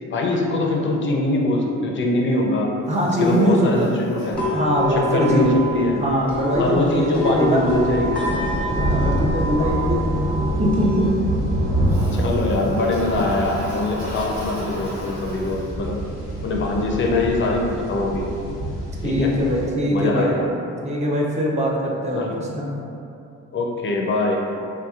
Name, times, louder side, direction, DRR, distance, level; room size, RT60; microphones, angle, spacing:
voice 1, 0.0-2.7 3.2-4.4 4.9-6.0 6.6-8.2 9.6-9.9 12.1-16.0 16.4-18.3 19.0-19.3 19.9-20.5 22.1-22.3 23.5-24.4, left 2 dB, 40° left, 0 dB, 0.5 m, -22 dB
voice 2, 2.9-3.9 4.5-5.4 5.9-7.7 8.7-10.3 10.6-11.1 19.0-20.3 20.8-22.3 22.5-22.7, equal, 25° right, -3 dB, 0.6 m, -21 dB
Toilet flush, 2.9-5.1 11.9-16.0, equal, 70° right, 1.4 m, -39 dB
sound 1, 4.3-18.3, left 1 dB, 5° left, 0.9 m, -31 dB
sound 2, 7.0-19.7, right 1 dB, 45° right, 1.3 m, -27 dB
3.4 x 2.8 x 2.3 m, 2.6 s
cardioid pair, 90°, 30 cm